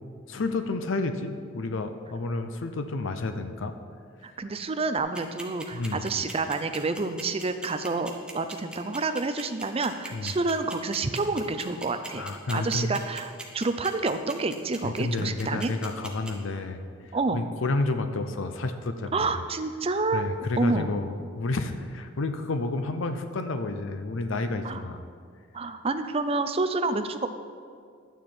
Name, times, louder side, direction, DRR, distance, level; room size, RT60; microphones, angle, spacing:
voice 1, 0.3-3.7 5.7-6.1 10.1-10.3 12.1-12.9 14.8-16.8 17.3-19.3 20.1-25.1, left 3 dB, 65° left, 8 dB, 0.6 m, -30 dB
voice 2, 4.2-12.2 12.5-15.7 17.1-17.4 19.1-20.2 20.6-20.9 24.6-24.8 25.5-27.3, right 3 dB, 30° right, 9 dB, 0.5 m, -28 dB
sound 1, 5.0-16.3, right 2 dB, 5° right, 1.0 m, -40 dB
12.0 x 9.2 x 4.3 m, 2.2 s
head